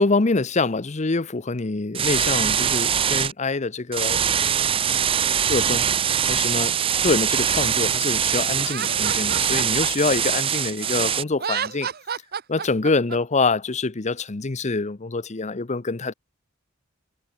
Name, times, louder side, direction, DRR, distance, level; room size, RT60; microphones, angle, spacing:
voice 1, 0.0-4.2 5.5-5.8 6.3-6.8 7.0-11.9 12.5-16.1, left 3 dB, 35° left, 0.8 m, -25 dB
sound 1, 1.9-3.3 3.9-11.2, right 8 dB, 25° right, 0.4 m, -22 dB
Laughter, 8.6-10.9 11.3-13.2, right 7 dB, 50° right, 1.0 m, -31 dB
head